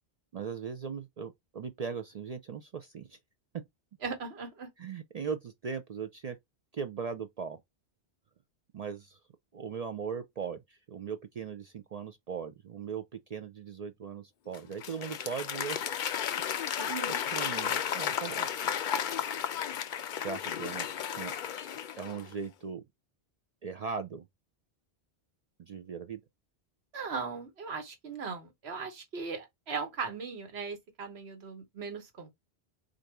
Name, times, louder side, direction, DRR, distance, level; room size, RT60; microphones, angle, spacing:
voice 1, 0.3-3.2 4.8-6.4 6.7-7.6 8.7-9.2 9.5-15.8 17.3-18.5 20.2-20.9 21.2-21.3 22.0-22.8 23.6-24.2 25.6-26.2, right 6 dB, 55° right, 0.4 m, -39 dB
voice 2, 4.0-4.7 16.8-17.2 26.9-32.3, right 5 dB, 75° right, 1.4 m, -38 dB
Applause / Crowd, 14.5-22.3, left 8 dB, 55° left, 0.6 m, -33 dB
3.9 x 2.6 x 4.5 m
omnidirectional pair, 1.1 m